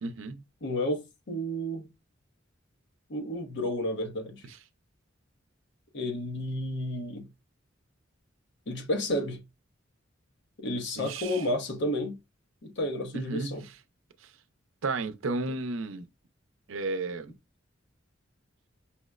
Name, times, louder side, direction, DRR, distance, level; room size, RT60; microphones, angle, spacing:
voice 1, 0.0-0.4 11.0-11.4 13.1-13.7 14.2-14.3 14.8-16.1 16.7-17.3, right 3 dB, 85° right, 0.5 m, -33 dB
voice 2, 0.6-1.9 3.1-4.4 5.9-7.3 8.7-9.4 10.6-12.2 12.6-13.6, left 1 dB, 65° left, 0.8 m, -31 dB
5.6 x 2.1 x 2.3 m
head